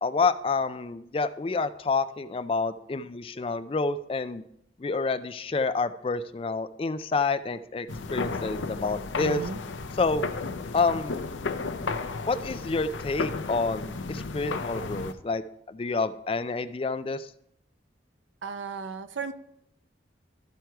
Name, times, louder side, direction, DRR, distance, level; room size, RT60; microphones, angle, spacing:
voice 1, 0.0-4.4 4.8-9.4 10.0-10.2 10.7-11.1 12.3-15.4 15.7-17.3, left 4 dB, 30° left, 12 dB, 0.3 m, -28 dB
sound 1, 7.9-15.1, left 4 dB, 90° left, 0.6 m, -33 dB
voice 2, 9.2-9.6 18.4-19.3, right 5 dB, 85° right, 10 dB, 0.6 m, -35 dB
13.0 x 4.6 x 4.6 m, 0.76 s
head